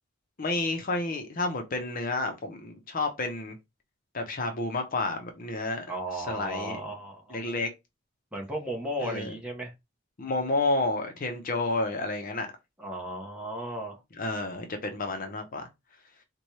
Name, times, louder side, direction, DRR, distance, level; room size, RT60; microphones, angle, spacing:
voice 1, 0.4-3.6 4.1-5.8 6.1-6.8 7.3-7.7 9.0-9.3 10.2-12.5 14.2-15.7, left 2 dB, 40° left, 0.6 m, -30 dB
voice 2, 5.9-7.6 8.3-9.7 12.8-14.0, right 1 dB, 5° right, 0.8 m, -35 dB
4.1 x 2.2 x 3.1 m
head